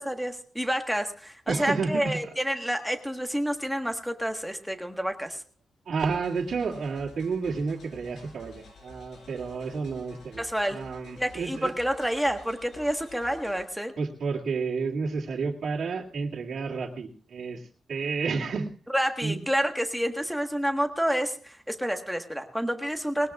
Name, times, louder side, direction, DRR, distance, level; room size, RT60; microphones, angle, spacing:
voice 1, 0.0-5.4 10.4-10.8 11.2-13.9 18.9-23.3, equal, ahead, 4 dB, 1.4 m, -29 dB
voice 2, 1.5-2.1 5.9-11.7 14.0-18.7 19.2-19.4, right 4 dB, 65° right, -2 dB, 2.3 m, -31 dB
sound 1, 6.0-13.7, left 2 dB, 90° left, 5.7 m, -51 dB
20.0 x 19.0 x 2.4 m, 0.40 s
wide cardioid pair, 150°, 0 cm